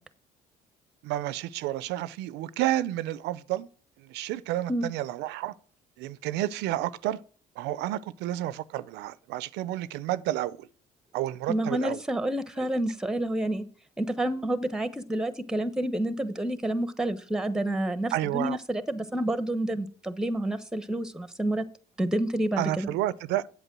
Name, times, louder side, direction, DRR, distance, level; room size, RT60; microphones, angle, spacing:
voice 1, 1.0-3.7 4.0-5.5 6.0-7.2 7.6-10.7 11.1-12.0 12.6-12.7 18.1-18.6 22.6-23.4, right 14 dB, 90° right, 0.5 m, -30 dB
voice 2, 11.5-13.7 14.0-21.7 22.0-22.9, right 1 dB, 5° right, 1.0 m, -29 dB
8.2 x 8.1 x 6.1 m
cardioid pair, 110°, 17 cm